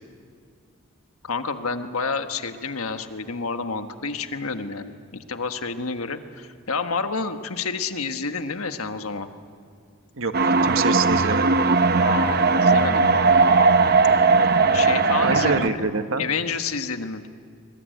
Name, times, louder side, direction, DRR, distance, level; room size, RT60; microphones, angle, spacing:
voice 1, 1.2-9.3 12.0-13.3 14.7-15.9 16.2-17.3, left 4 dB, 85° left, 7 dB, 1.4 m, -29 dB
voice 2, 10.1-11.5 14.4-14.5 15.2-16.2, right 4 dB, 70° right, 8 dB, 1.3 m, -26 dB
sound 1, 10.3-15.7, right 4 dB, 45° right, 0.9 m, -18 dB
25.0 x 22.0 x 9.2 m, 2.2 s
head